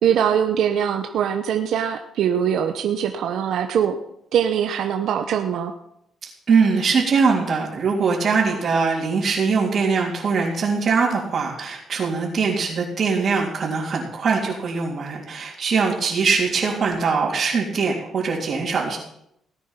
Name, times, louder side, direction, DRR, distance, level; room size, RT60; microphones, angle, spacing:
voice 1, 0.0-4.0 4.3-5.7, right 9 dB, 75° right, 6 dB, 1.0 m, -22 dB
voice 2, 6.5-19.0, right 5 dB, 55° right, -6 dB, 3.5 m, -22 dB
18.0 x 9.3 x 5.9 m, 0.77 s
cardioid pair, 90°, 0 cm